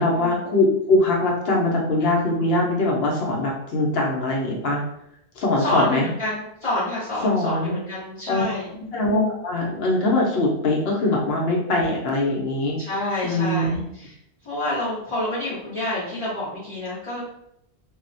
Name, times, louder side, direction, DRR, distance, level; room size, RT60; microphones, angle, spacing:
voice 1, 0.0-4.8 5.4-6.1 7.2-7.8 8.3-8.5 8.9-12.8 13.2-13.8, left 2 dB, 75° left, -2 dB, 0.9 m, -22 dB
voice 2, 5.6-8.7 12.8-14.1 14.4-17.2, left 1 dB, 30° left, -11 dB, 0.8 m, -28 dB
2.4 x 2.1 x 2.5 m, 0.76 s
omnidirectional pair, 1.0 m